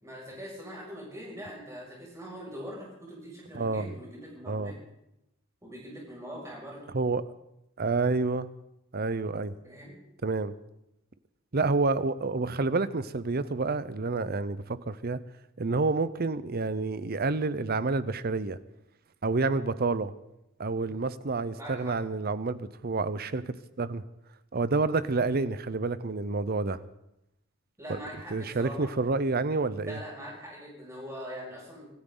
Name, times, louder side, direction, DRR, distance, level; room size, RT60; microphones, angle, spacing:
voice 1, 0.0-4.8 5.6-6.8 9.6-10.0 20.8-21.0 21.5-22.0 27.8-29.0 29.8-31.9, equal, 15° right, -4 dB, 6.6 m, -42 dB
voice 2, 3.5-3.9 4.5-4.7 6.9-7.3 7.8-8.5 8.9-9.5 10.2-10.5 11.5-15.2 15.6-18.6 19.2-20.1 20.6-24.0 24.5-26.8 27.9-28.0 28.3-30.0, right 3 dB, 45° right, 15 dB, 0.7 m, -29 dB
25.5 x 14.0 x 4.0 m, 0.86 s
head